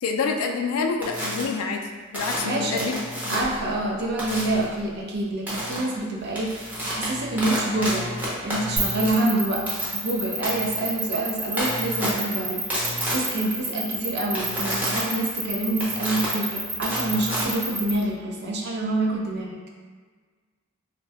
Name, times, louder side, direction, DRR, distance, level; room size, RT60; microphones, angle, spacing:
voice 1, 0.0-1.9 2.1-3.5, left 4 dB, 90° left, 3 dB, 0.3 m, -27 dB
sound 1, 1.0-1.4 2.1-3.6 4.2-4.6 5.5-5.8 6.2-18.1, equal, 10° right, 0.6 m, -31 dB
voice 2, 2.4-2.9 3.3-8.2 8.4-9.7 9.9-19.6, right 2 dB, 50° right, -1 dB, 0.5 m, -27 dB
sound 2, 8.8-17.9, right 3 dB, 75° right, 0.9 m, -29 dB
2.6 x 2.2 x 3.3 m, 1.5 s
head